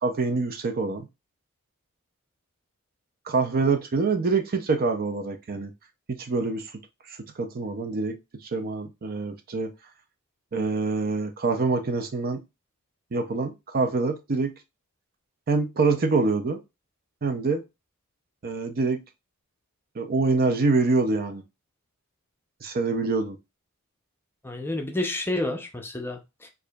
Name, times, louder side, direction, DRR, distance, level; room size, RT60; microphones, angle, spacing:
voice 1, 0.0-1.1 3.3-5.7 6.1-6.7 7.1-8.2 8.5-9.7 10.5-12.4 13.1-14.5 15.5-16.6 17.2-17.6 18.4-19.0 20.0-21.4 22.6-23.4, right 3 dB, 45° right, 0.5 m, -25 dB
voice 2, 24.4-26.5, left 1 dB, 10° left, 0.5 m, -30 dB
4.6 x 2.6 x 2.3 m
head